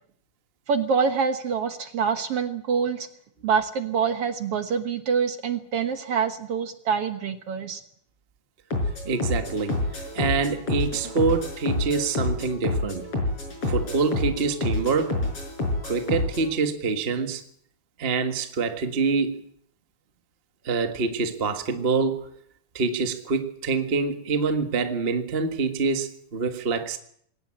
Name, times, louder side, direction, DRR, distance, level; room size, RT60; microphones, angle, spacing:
voice 1, 0.7-3.1 3.4-7.8, right 6 dB, 55° right, 1.9 m, -25 dB
sound 1, 8.7-16.5, left 2 dB, 45° left, 6.7 m, -28 dB
voice 2, 9.0-9.8 10.1-13.1 13.7-15.2 15.8-17.4 18.0-19.4 20.6-22.3 22.7-27.0, right 4 dB, 30° right, 1.0 m, -26 dB
21.0 x 18.0 x 8.7 m
omnidirectional pair, 3.7 m